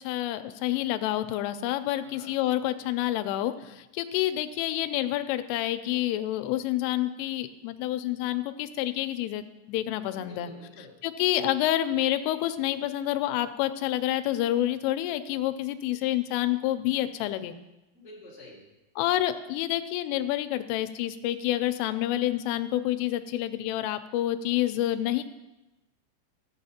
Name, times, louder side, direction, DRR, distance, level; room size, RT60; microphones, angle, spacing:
voice 1, 0.0-10.5 11.0-17.5 19.0-25.2, left 13 dB, 85° left, 10 dB, 3.0 m, -28 dB
voice 2, 2.0-2.3 10.1-10.9 17.9-18.7, left 1 dB, 5° right, -7 dB, 1.6 m, -49 dB
14.5 x 9.3 x 2.8 m, 1.0 s
omnidirectional pair, 5.8 m